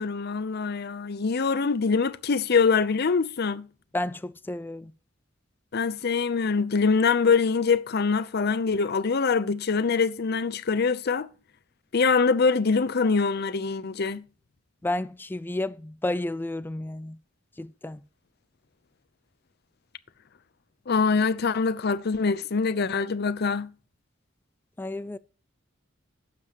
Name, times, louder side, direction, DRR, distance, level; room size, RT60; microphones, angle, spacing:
voice 1, 0.0-3.7 5.7-11.3 11.9-14.2 20.9-23.7, left 5 dB, 55° left, 0.6 m, -24 dB
voice 2, 3.9-4.9 14.8-17.2 17.6-18.0 24.8-25.2, left 1 dB, 10° left, 0.3 m, -31 dB
12.0 x 7.5 x 3.0 m
head